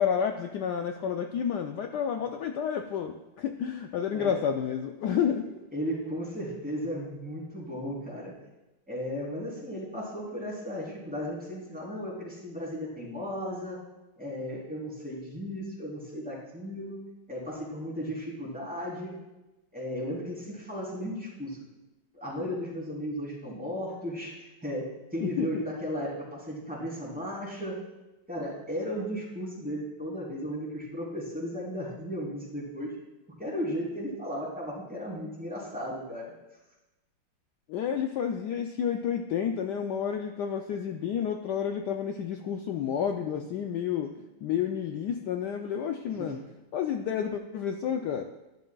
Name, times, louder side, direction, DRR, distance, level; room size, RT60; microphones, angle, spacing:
voice 1, 0.0-5.5 25.2-25.5 37.7-44.1 44.4-46.4 46.7-48.3, left 8 dB, 85° left, 4 dB, 0.9 m, -30 dB
voice 2, 5.7-8.4 8.9-13.8 14.2-17.0 17.3-19.2 19.7-21.6 22.1-27.8 28.3-32.9 33.4-36.3 46.2-46.3, equal, 5° right, -6 dB, 3.2 m, -35 dB
12.5 x 11.0 x 2.3 m, 0.99 s
omnidirectional pair, 2.4 m